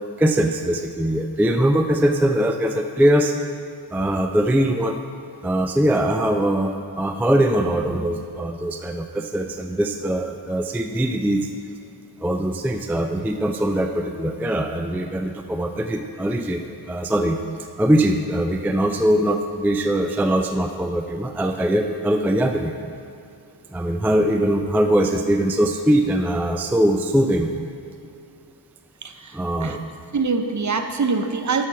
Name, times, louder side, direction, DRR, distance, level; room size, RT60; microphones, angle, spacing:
voice 1, 0.2-3.3 3.9-5.0 5.4-11.5 12.2-17.4 17.8-22.7 23.7-27.5 29.3-29.8, right 1 dB, 5° right, 5 dB, 0.3 m, -21 dB
voice 2, 29.0-29.3 29.6-29.8 30.1-31.7, right 4 dB, 40° right, 7 dB, 0.7 m, -24 dB
8.1 x 4.5 x 5.7 m, 2.6 s
cardioid pair, 50°, 46 cm